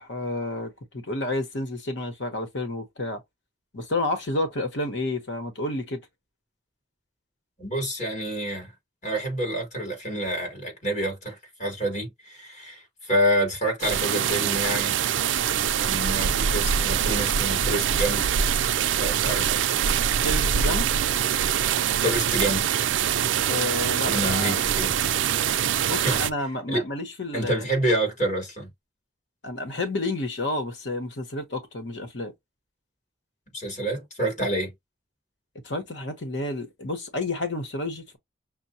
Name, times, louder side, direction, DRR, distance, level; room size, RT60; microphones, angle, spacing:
voice 1, 0.0-3.2 3.7-6.0 20.2-20.9 23.5-24.9 25.9-27.7 29.4-32.3 35.6-38.2, left 2 dB, 75° left, 1.1 m, -30 dB
voice 2, 7.6-8.7 9.0-15.0 15.8-18.3 18.9-19.6 22.0-22.7 24.0-25.0 25.9-26.3 26.7-26.8 27.3-28.7 33.5-34.7, right 1 dB, 40° left, 3.0 m, -28 dB
sound 1, 13.8-26.3, right 8 dB, 85° right, 0.4 m, -24 dB
6.0 x 2.2 x 2.7 m
head